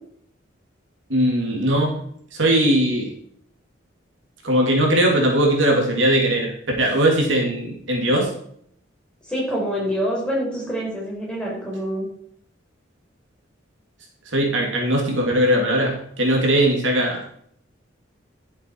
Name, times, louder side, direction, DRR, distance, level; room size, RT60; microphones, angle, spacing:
voice 1, 1.1-2.0 2.3-3.1 4.4-6.5 6.8-8.3 14.3-17.2, right 1 dB, 75° right, 0 dB, 2.6 m, -19 dB
voice 2, 9.3-12.1, equal, 5° left, -5 dB, 4.5 m, -26 dB
11.0 x 7.4 x 4.7 m, 0.64 s
head